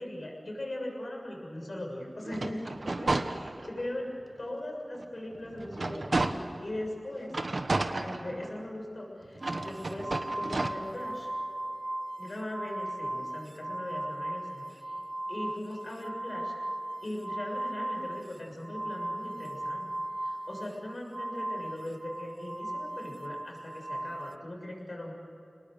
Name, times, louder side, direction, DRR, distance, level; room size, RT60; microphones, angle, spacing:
voice 1, 0.0-7.4 7.9-11.3 12.2-15.0 15.3-16.5 17.0-19.9 20.2-25.1, left 1 dB, 65° left, 0 dB, 6.8 m, -39 dB
sound 1, 2.2-3.9 4.4-4.5 4.9-6.7 7.3-8.8 9.3-10.7, right 2 dB, 80° right, 1.3 m, -32 dB
sound 2, 9.4-24.3, right 1 dB, 35° right, 0.7 m, -37 dB
30.0 x 19.5 x 6.8 m, 2.7 s
wide cardioid pair, 65°, 0 cm